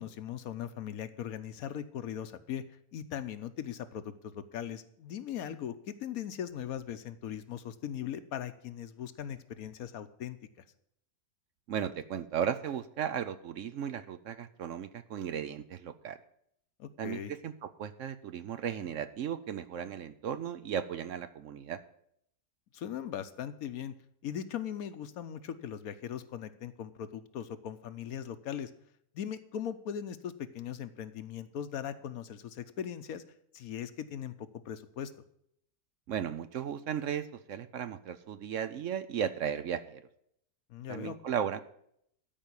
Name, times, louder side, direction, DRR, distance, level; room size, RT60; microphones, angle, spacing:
voice 1, 0.0-2.6 2.9-10.4 16.8-17.3 22.7-23.9 24.2-28.7 29.1-33.2 33.5-35.1 40.7-41.2, left 9 dB, 75° left, 11 dB, 1.2 m, -39 dB
voice 2, 11.7-16.2 17.0-21.8 36.1-40.0 40.9-41.6, right 8 dB, 65° right, 12 dB, 0.9 m, -35 dB
13.0 x 5.3 x 8.5 m, 0.71 s
omnidirectional pair, 1.6 m